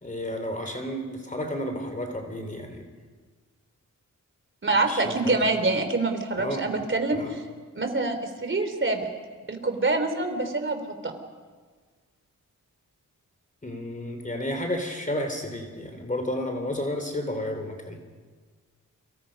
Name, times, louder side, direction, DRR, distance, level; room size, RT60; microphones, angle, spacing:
voice 1, 0.0-2.8 4.9-5.6 6.4-6.8 7.1-7.3 13.6-18.0, left 1 dB, 25° left, 5 dB, 3.5 m, -32 dB
voice 2, 4.6-7.4 7.8-9.0 9.5-11.2, right 3 dB, 35° right, 6 dB, 3.5 m, -26 dB
29.0 x 24.5 x 5.4 m, 1.5 s
cardioid pair, 80°, 32 cm